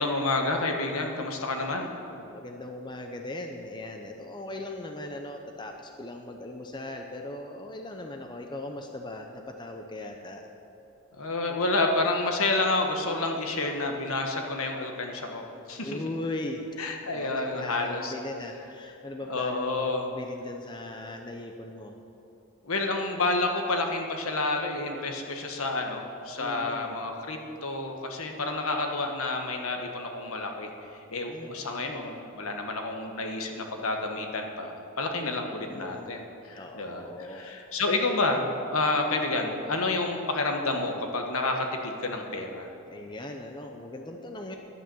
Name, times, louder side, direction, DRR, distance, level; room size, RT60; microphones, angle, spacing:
voice 1, 0.0-1.9 11.2-15.4 15.7-16.0 16.8-18.1 19.3-20.0 22.6-30.7 31.1-42.7, left 2 dB, 75° left, 3 dB, 1.3 m, -29 dB
voice 2, 1.7-10.4 15.8-16.6 17.1-21.9 26.4-27.0 31.3-31.5 31.8-32.1 35.2-36.2 36.6-37.4 42.9-44.6, left 2 dB, 20° left, 3 dB, 0.6 m, -39 dB
11.0 x 9.0 x 6.9 m, 2.8 s
head